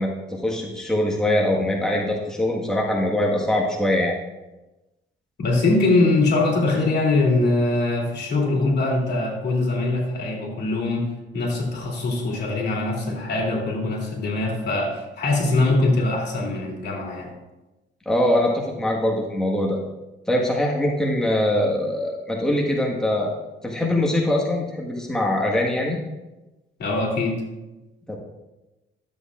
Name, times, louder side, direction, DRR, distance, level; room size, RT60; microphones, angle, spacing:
voice 1, 0.0-4.1 18.0-19.8 20.3-23.3 23.6-26.0 28.1-28.2, left 1 dB, 5° left, -2 dB, 1.5 m, -22 dB
voice 2, 5.4-17.3 26.8-27.4, left 2 dB, 60° left, -2 dB, 2.8 m, -22 dB
12.5 x 8.1 x 2.5 m, 1.0 s
cardioid pair, 90°, 20 cm